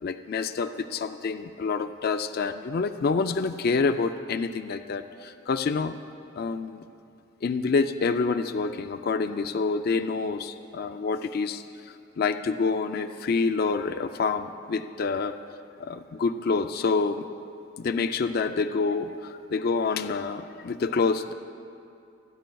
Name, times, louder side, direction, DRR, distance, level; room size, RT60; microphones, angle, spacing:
voice 1, 0.0-5.9 6.4-6.8 7.4-11.6 12.2-15.4 15.8-17.2 17.8-21.3, left 4 dB, 55° left, 9 dB, 0.4 m, -27 dB
27.0 x 10.0 x 2.3 m, 2.5 s
head